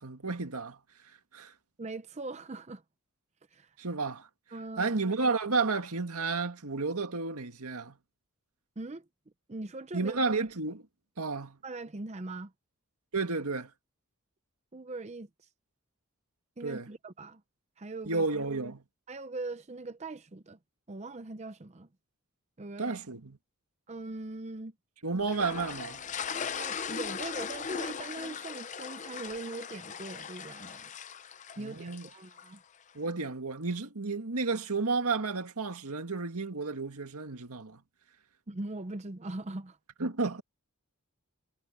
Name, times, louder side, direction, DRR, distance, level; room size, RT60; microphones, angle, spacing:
voice 1, 0.0-1.5 3.8-4.3 4.8-8.0 9.9-10.8 11.2-11.6 13.1-13.7 16.6-16.9 18.0-18.8 22.8-23.4 25.0-26.0 31.6-32.1 32.9-37.8 40.0-40.4, right 3 dB, 85° right, 1.9 m, -32 dB
voice 2, 1.8-2.8 3.5-3.8 4.5-4.9 8.8-9.1 9.5-10.2 11.6-12.5 14.7-15.3 16.6-17.4 17.8-18.2 19.1-20.6 20.9-21.9 22.6-23.0 23.9-24.7 26.6-30.9 31.6-32.6 38.5-39.8, right 2 dB, 30° right, 0.6 m, -41 dB
sound 1, 25.3-32.6, left 6 dB, 35° left, 0.6 m, -39 dB
head